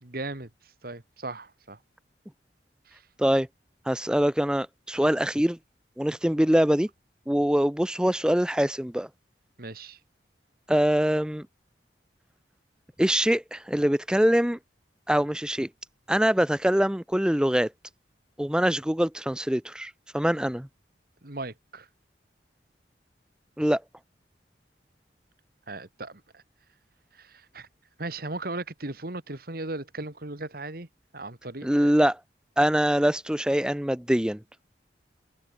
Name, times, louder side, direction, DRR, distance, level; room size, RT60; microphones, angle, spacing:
voice 1, 0.0-0.5 0.8-1.8 2.9-3.0 9.6-10.0 21.2-21.9 25.7-26.4 27.1-27.7 28.0-30.9 31.1-31.9, right 2 dB, 55° right, 2.0 m, -37 dB
voice 2, 3.9-5.6 6.0-6.9 7.3-9.1 10.7-11.5 13.0-14.6 15.1-15.7 16.1-17.7 18.4-20.7 23.6-23.8 31.6-32.2 32.6-34.4, equal, 5° right, 0.6 m, -23 dB
head